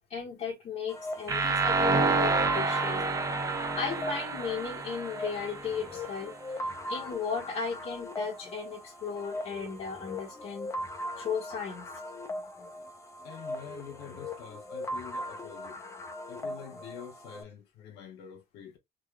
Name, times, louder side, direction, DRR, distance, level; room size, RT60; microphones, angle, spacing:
voice 1, 0.1-3.0 3.4-6.3 6.9-10.7 11.2-11.9, left 6 dB, 50° left, 1.4 m, -36 dB
sound 1, 0.9-17.4, left 1 dB, 15° left, 0.9 m, -40 dB
sound 2, 1.3-6.2, right 4 dB, 20° right, 0.6 m, -29 dB
voice 2, 13.2-15.8 16.3-18.8, left 7 dB, 75° left, 1.2 m, -46 dB
3.7 x 3.2 x 2.3 m
cardioid pair, 140°, 17 cm